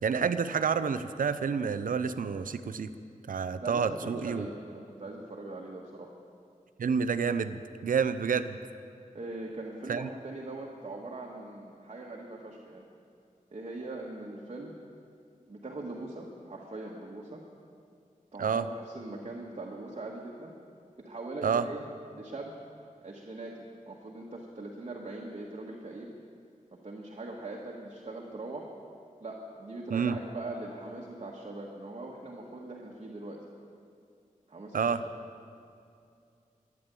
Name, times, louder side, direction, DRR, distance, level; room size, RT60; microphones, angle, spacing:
voice 1, 0.0-2.9 3.3-4.5 6.8-8.6 9.9-10.1 18.4-18.7 21.4-21.7 29.9-30.1 34.7-35.0, right 6 dB, 80° right, 12 dB, 0.6 m, -29 dB
voice 2, 3.6-6.1 9.1-12.8 13.5-14.7 15.5-17.4 18.3-20.5 21.0-21.8 22.1-22.6 23.0-23.6 23.9-26.1 26.7-28.7 29.2-33.4 34.5-35.1, right 2 dB, 45° right, -2 dB, 1.6 m, -41 dB
13.0 x 10.5 x 8.4 m, 2.4 s
wide cardioid pair, 100°, 14 cm